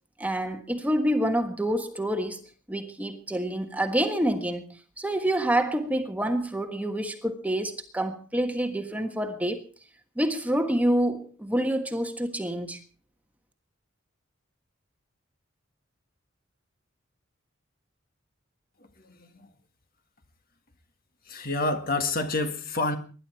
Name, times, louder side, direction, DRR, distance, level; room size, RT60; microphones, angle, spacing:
voice 1, 0.2-2.4 2.7-4.6 5.0-9.6 10.2-12.8, right 1 dB, 5° right, 1.4 m, -27 dB
voice 2, 19.0-19.5 21.3-23.0, left 2 dB, 45° left, 1.9 m, -28 dB
24.0 x 11.0 x 4.4 m
head